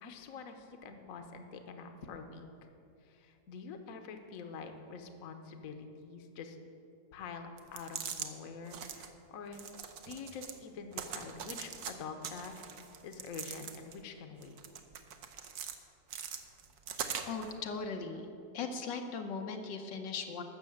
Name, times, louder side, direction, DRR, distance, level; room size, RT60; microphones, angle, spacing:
voice 1, 0.0-2.5 3.0-6.6 7.1-9.7 10.0-12.6 13.0-14.6, left 5 dB, 55° left, 6 dB, 1.2 m, -46 dB
sound 1, 7.6-8.3 8.7-9.1 9.5-10.6 10.9-11.9 12.2-14.0 14.4-15.8 16.1-17.5, right 7 dB, 65° right, 1.2 m, -42 dB
voice 2, 17.3-18.3 18.5-20.4, left 4 dB, 80° left, 4 dB, 1.6 m, -38 dB
12.5 x 6.5 x 7.8 m, 2.6 s
omnidirectional pair, 1.9 m